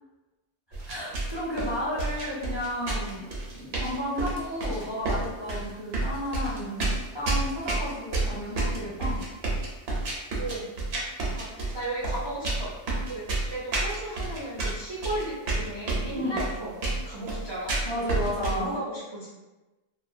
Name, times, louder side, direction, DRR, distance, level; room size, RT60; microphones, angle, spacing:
sound 1, 0.7-18.7, right 2 dB, 65° right, 0.8 m, -30 dB
voice 1, 0.8-9.2 16.1-16.4 17.8-18.7, left 1 dB, 30° left, -10 dB, 0.6 m, -32 dB
voice 2, 11.3-12.7 13.1-16.7 17.0-17.7 18.4-19.3, right 1 dB, 45° right, -8 dB, 0.3 m, -35 dB
2.3 x 2.1 x 2.6 m, 1.1 s
omnidirectional pair, 1.2 m